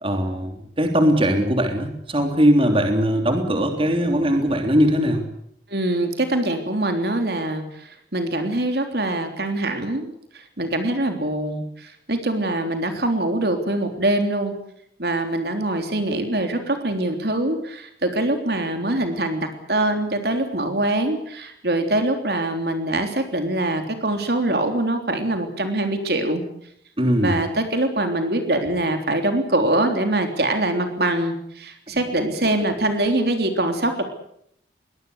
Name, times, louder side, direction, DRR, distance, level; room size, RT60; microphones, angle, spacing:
voice 1, 0.0-5.2 27.0-27.3 31.9-32.0, equal, 30° right, 5 dB, 3.4 m, -20 dB
voice 2, 5.7-14.5 15.0-26.4 27.2-34.0, right 1 dB, 60° right, 6 dB, 3.4 m, -23 dB
23.0 x 20.0 x 8.2 m, 0.71 s
head